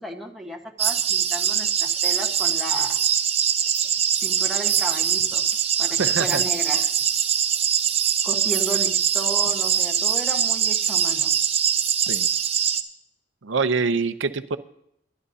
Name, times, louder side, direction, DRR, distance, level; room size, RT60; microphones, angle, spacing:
voice 1, 0.0-3.0 4.2-5.5 5.8-6.9 8.2-11.3, right 1 dB, ahead, -1 dB, 1.2 m, -34 dB
sound 1, 0.8-12.8, right 8 dB, 35° right, 0.7 m, -22 dB
voice 2, 6.0-6.4 12.1-12.3 13.4-14.6, right 4 dB, 85° right, 12 dB, 0.7 m, -25 dB
23.5 x 11.0 x 2.8 m, 0.76 s
head